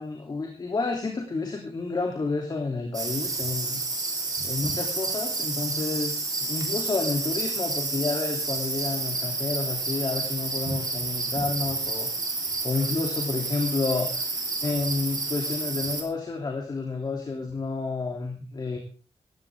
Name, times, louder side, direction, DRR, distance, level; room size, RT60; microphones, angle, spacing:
voice 1, 0.0-3.8 4.4-12.1 12.6-18.8, left 3 dB, 40° left, 1 dB, 3.0 m, -30 dB
sound 1, 2.9-16.0, right 3 dB, 35° right, 3.8 m, -30 dB
18.5 x 15.5 x 3.7 m, 0.36 s
wide cardioid pair, 175°, 11 cm